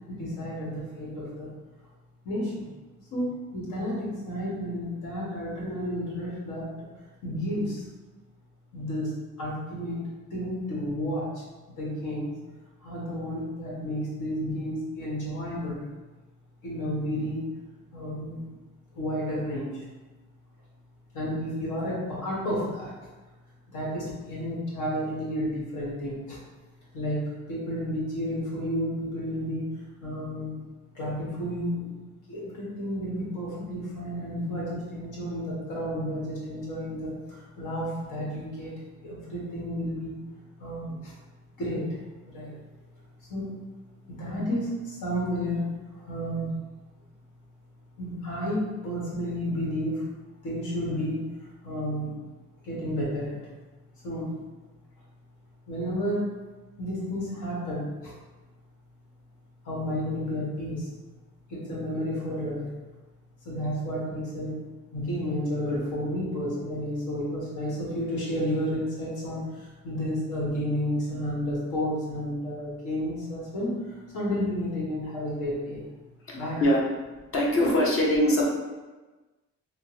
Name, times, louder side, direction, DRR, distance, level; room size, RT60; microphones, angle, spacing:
voice 1, 0.1-1.5 2.2-2.7 3.1-6.9 7.2-7.8 8.7-9.1 9.4-10.0 10.3-11.4 11.8-12.3 12.8-15.8 16.6-17.4 17.9-18.5 18.9-19.8 21.1-23.1 23.7-26.4 26.9-29.6 30.0-30.6 30.9-31.8 32.3-38.7 39.0-40.1 40.6-41.1 41.6-42.0 42.3-42.5 43.3-43.6 44.0-45.6 45.9-46.5 48.0-50.0 50.4-51.2 51.6-52.1 52.6-53.4 54.0-54.3 55.7-56.2 56.8-58.1 59.6-60.9 61.5-62.6 63.4-64.6 64.9-75.8 76.3-76.6, equal, 75° left, -6 dB, 1.4 m, -31 dB
voice 2, 76.3-76.8 77.3-78.5, left 1 dB, 45° left, -3 dB, 0.9 m, -23 dB
3.5 x 2.1 x 3.0 m, 1.2 s
cardioid pair, 90°, 30 cm